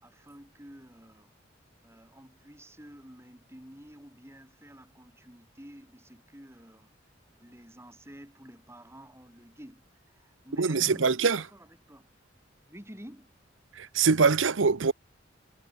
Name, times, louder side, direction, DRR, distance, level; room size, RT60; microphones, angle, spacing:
voice 1, 0.0-1.3 1.8-6.9 7.4-12.1 12.7-13.3 13.9-14.0, equal, 15° right, 5.1 m, -50 dB
voice 2, 10.6-11.4 13.8-14.9, right 5 dB, 80° right, 0.8 m, -23 dB
head